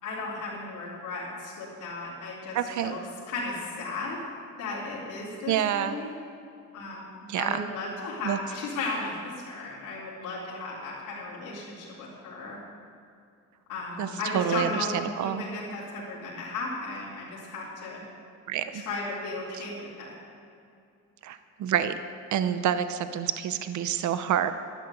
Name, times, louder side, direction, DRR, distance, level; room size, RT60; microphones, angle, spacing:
voice 1, 0.0-2.5 2.8-3.0 3.3-4.2 4.6-6.1 6.7-12.6 13.7-18.0 18.7-20.1, left 3 dB, 85° left, -7 dB, 4.0 m, -35 dB
voice 2, 2.5-3.0 5.5-6.0 7.3-7.7 8.2-8.4 14.0-15.4 18.5-18.8 19.6-19.7 21.2-21.9 22.3-24.5, right 9 dB, 70° right, 11 dB, 0.8 m, -28 dB
12.5 x 11.5 x 7.9 m, 2.5 s
cardioid pair, 90°, 30 cm